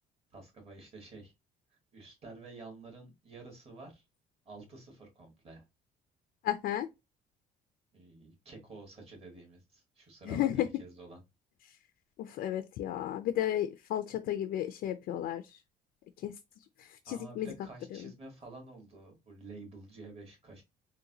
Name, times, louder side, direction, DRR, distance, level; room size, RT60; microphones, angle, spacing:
voice 1, 0.3-1.3 1.9-4.0 4.5-5.6 7.9-11.2 17.1-20.6, right 3 dB, 35° right, 1.8 m, -50 dB
voice 2, 6.4-6.9 10.3-10.7 12.2-15.6 16.2-16.3 16.8-17.5 18.0-18.1, left 12 dB, 65° left, 0.4 m, -33 dB
3.8 x 2.3 x 2.8 m
cardioid pair, 110°, 17 cm